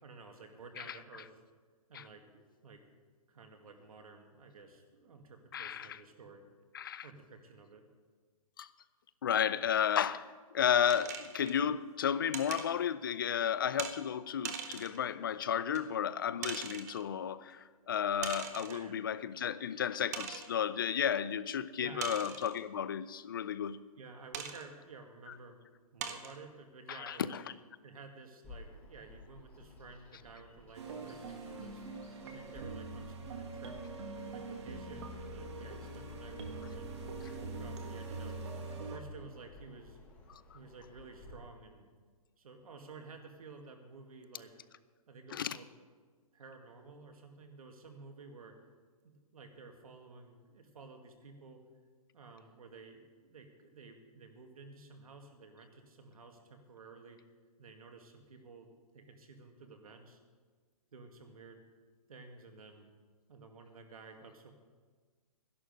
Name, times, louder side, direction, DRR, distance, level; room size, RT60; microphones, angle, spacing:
voice 1, 0.0-1.3 1.9-2.8 3.3-6.5 7.0-7.9 18.6-19.0 21.8-22.1 24.0-25.7 25.9-27.4 27.8-31.8 32.2-33.8 34.3-36.9 37.2-38.4 38.9-40.0 40.5-41.9 42.4-44.5 45.1-45.7 46.3-48.6 49.0-51.6 52.1-57.2 57.6-58.7 58.9-60.2 60.9-61.6 62.1-62.9 63.3-64.5, right 4 dB, 70° right, 4 dB, 2.2 m, -53 dB
voice 2, 5.5-6.0 6.7-7.1 8.6-8.7 9.2-10.3 10.5-23.8 26.9-27.4 40.3-40.4 45.3-45.6, left 8 dB, 35° left, 15 dB, 0.4 m, -33 dB
sound 1, 10.9-11.6 12.3-12.7 13.8-14.0 14.4-15.0 15.7-15.8 16.4-17.0 18.2-18.8 19.4-19.5 20.1-20.5 22.0-22.6 24.3-24.6 25.3-25.4 26.0-26.4, right 7 dB, 25° right, 0.8 m, -41 dB
Bird vocalization bird call bird song, 28.4-41.3, left 2 dB, 10° left, 1.2 m, -55 dB
sound 2, 30.7-39.0, right 3 dB, 45° right, 1.8 m, -43 dB
11.5 x 11.5 x 6.5 m, 1.5 s
hypercardioid pair, 170°, 19 cm